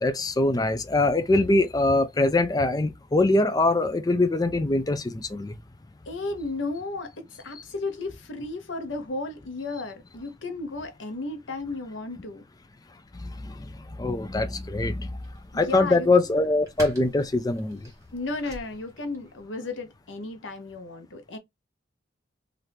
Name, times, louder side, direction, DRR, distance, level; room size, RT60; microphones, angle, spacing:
voice 1, 0.0-5.5 13.1-13.7 14.0-15.1 15.5-17.9, left 2 dB, 20° left, 0.4 m, -23 dB
voice 2, 6.1-12.4 15.5-16.1 18.1-21.4, left 3 dB, 90° left, 0.8 m, -34 dB
sound 1, 14.1-19.5, equal, 15° right, 1.1 m, -45 dB
2.9 x 2.5 x 3.3 m
head